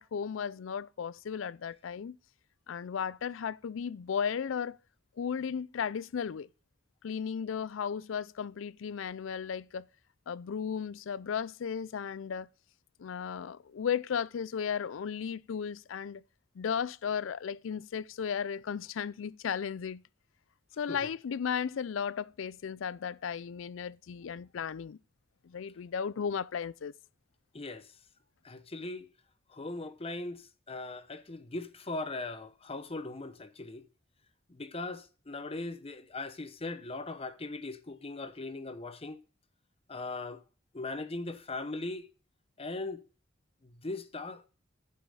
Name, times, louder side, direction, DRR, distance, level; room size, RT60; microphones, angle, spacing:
voice 1, 0.0-2.2 2.7-4.8 5.2-6.5 7.0-9.9 10.3-12.5 13.0-16.2 16.6-20.0 20.8-25.0 25.4-26.9, left 7 dB, 75° left, 0.4 m, -35 dB
voice 2, 27.5-27.9 28.4-29.1 29.5-33.8 34.5-39.2 39.9-40.4 40.7-42.1 42.6-43.0 43.6-44.5, left 2 dB, 30° left, 0.8 m, -39 dB
10.0 x 5.7 x 6.3 m
head